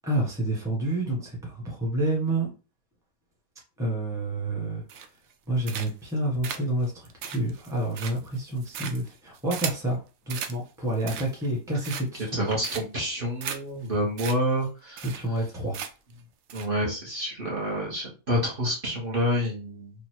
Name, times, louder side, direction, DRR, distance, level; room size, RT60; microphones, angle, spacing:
voice 1, 0.0-2.5 3.8-4.8 5.5-10.0 10.3-12.2 15.0-15.8, right 1 dB, ahead, -3 dB, 1.1 m, -29 dB
sound 1, 4.9-5.3 5.6-6.1 6.4-9.9 10.3-10.6 10.9-11.5 11.8-12.3 12.6-13.0 13.4-13.6 13.9-14.0 14.2-14.4 14.6-14.7 15.0-15.4 15.7-16.1 16.5-16.7, right 7 dB, 80° right, 1.0 m, -36 dB
voice 2, 12.3-15.0 16.5-19.9, equal, 40° right, -4 dB, 1.4 m, -28 dB
3.4 x 2.3 x 4.4 m, 0.32 s
omnidirectional pair, 1.5 m